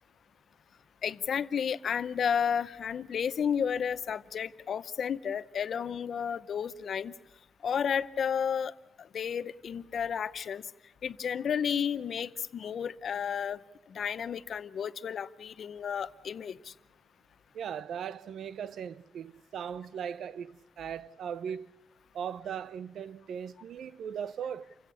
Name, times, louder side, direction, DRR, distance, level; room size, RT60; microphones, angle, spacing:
voice 1, 1.0-7.1 7.6-8.7 9.1-10.6 11.0-13.6 13.9-16.7, left 7 dB, 50° left, 0.8 m, -32 dB
voice 2, 17.5-21.7 22.1-24.8, right 8 dB, 70° right, 0.7 m, -38 dB
29.0 x 16.5 x 7.0 m
wide cardioid pair, 175°, 0 cm